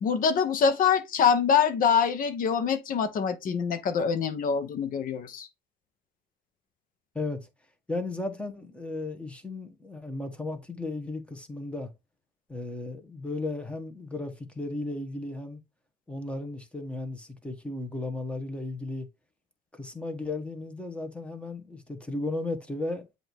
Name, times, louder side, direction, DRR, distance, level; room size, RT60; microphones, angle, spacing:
voice 1, 0.0-5.5, left 6 dB, 55° left, 0.9 m, -25 dB
voice 2, 7.1-7.5 7.9-11.9 12.5-15.6 16.1-19.1 19.7-23.2, left 2 dB, 5° left, 1.2 m, -35 dB
7.7 x 2.7 x 4.5 m
cardioid pair, 110°, 17 cm